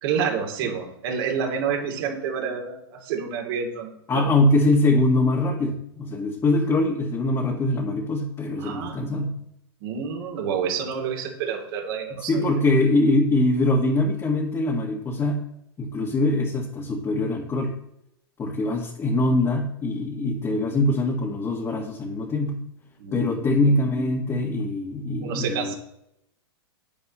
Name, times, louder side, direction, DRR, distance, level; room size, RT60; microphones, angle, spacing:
voice 1, 0.0-4.3 8.6-9.2 9.8-12.5 23.0-23.6 25.2-25.7, right 6 dB, 60° right, 1 dB, 3.0 m, -29 dB
voice 2, 4.1-9.3 12.2-15.4 15.8-17.7 18.4-22.6 23.1-25.7, left 2 dB, 20° left, -2 dB, 1.7 m, -23 dB
10.0 x 9.2 x 3.1 m, 0.79 s
hypercardioid pair, 115°, 14 cm